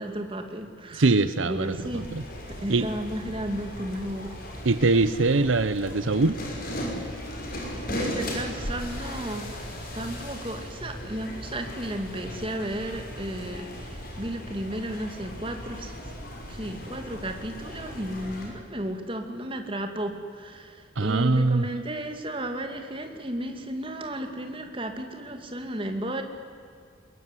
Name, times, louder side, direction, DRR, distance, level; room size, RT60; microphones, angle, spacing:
voice 1, 0.0-1.0 1.5-2.0 2.5-4.4 7.9-16.1 16.5-26.2, right 1 dB, 25° right, 5 dB, 2.3 m, -34 dB
voice 2, 0.9-2.2 2.7-2.9 4.6-6.4 21.0-21.7, right 3 dB, 75° right, 13 dB, 0.8 m, -22 dB
sound 1, 1.5-18.5, equal, 45° left, 6.0 m, -37 dB
22.0 x 21.5 x 9.8 m, 2.3 s
head